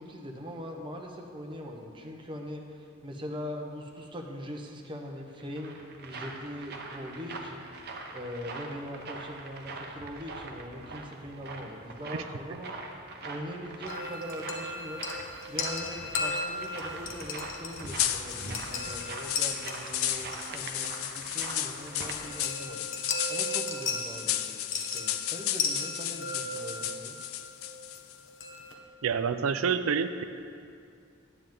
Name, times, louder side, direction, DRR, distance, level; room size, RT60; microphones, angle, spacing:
voice 1, 0.0-7.6 8.1-12.7 13.2-15.0 15.5-22.9 23.3-24.7 24.9-27.2, equal, 25° right, 1 dB, 0.9 m, -41 dB
sound 1, 5.2-22.2, right 3 dB, 50° right, 0.8 m, -42 dB
sound 2, 13.9-28.7, left 3 dB, 65° left, 0.9 m, -37 dB
sound 3, 17.9-28.1, left 12 dB, 90° left, 0.4 m, -34 dB
voice 2, 29.0-30.2, right 6 dB, 85° right, 11 dB, 0.4 m, -27 dB
9.7 x 9.0 x 3.8 m, 2.4 s
head